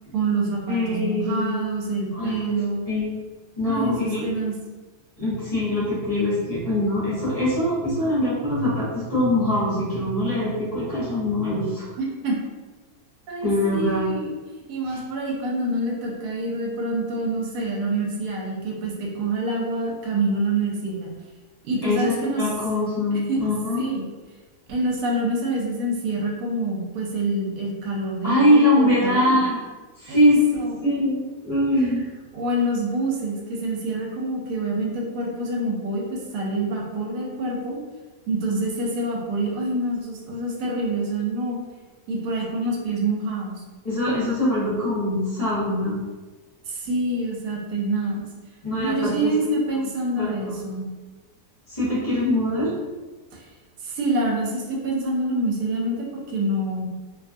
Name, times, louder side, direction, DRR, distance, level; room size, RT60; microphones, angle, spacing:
voice 1, 0.1-2.8 3.7-4.5 12.0-12.4 13.3-21.1 21.6-22.4 23.1-23.4 23.8-24.1 24.7-29.4 30.1-30.8 32.3-37.8 38.3-41.6 42.1-43.6 46.7-48.2 48.8-50.8 53.8-56.9, right 2 dB, 85° right, -1 dB, 1.1 m, -26 dB
voice 2, 0.7-1.6 2.1-2.6 2.9-3.1 3.6-4.2 5.2-11.9 13.4-14.1 14.9-15.0 21.8-23.8 28.2-29.6 30.0-30.4 30.8-32.1 43.8-46.0 48.6-49.3 50.2-50.5 51.7-52.7, left 1 dB, 30° left, -11 dB, 0.9 m, -23 dB
2.7 x 2.3 x 2.5 m, 1.3 s
omnidirectional pair, 1.6 m